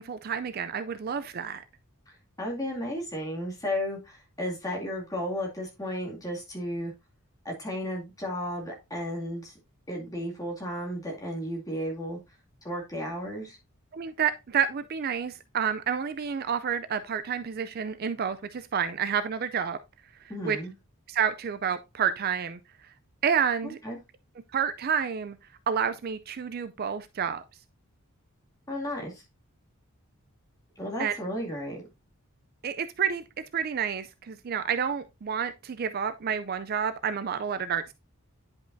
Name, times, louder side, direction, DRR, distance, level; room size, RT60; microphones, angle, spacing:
voice 1, 0.0-1.6 13.9-19.8 20.4-20.6 21.1-22.6 23.2-23.8 24.5-25.4 25.7-27.4 31.0-31.1 32.6-33.2 33.5-37.9, right 7 dB, 45° right, 0.4 m, -29 dB
voice 2, 2.4-6.9 7.4-9.5 9.9-12.2 12.6-13.6 20.3-20.7 23.6-24.0 28.7-29.2 30.8-31.8, equal, 15° left, 2.3 m, -33 dB
10.0 x 5.3 x 2.6 m
head